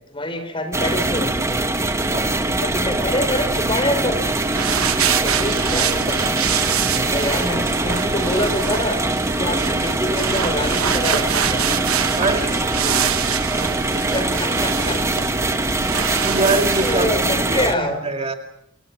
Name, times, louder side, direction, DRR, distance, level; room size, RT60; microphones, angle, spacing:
voice 1, 0.1-1.6 2.6-4.3 5.2-6.3 6.8-9.0 9.3-11.7 14.1-15.0 16.8-18.0, left 1 dB, 25° left, 9 dB, 4.6 m, -26 dB
sound 1, 0.7-17.8, right 2 dB, 15° right, 1.5 m, -22 dB
voice 2, 2.1-2.4 12.2-13.2 14.8-15.0 16.2-18.3, right 2 dB, 30° right, 4 dB, 2.4 m, -25 dB
sound 2, 4.2-17.3, right 10 dB, 90° right, 1.1 m, -26 dB
29.0 x 28.5 x 6.1 m, 0.77 s
head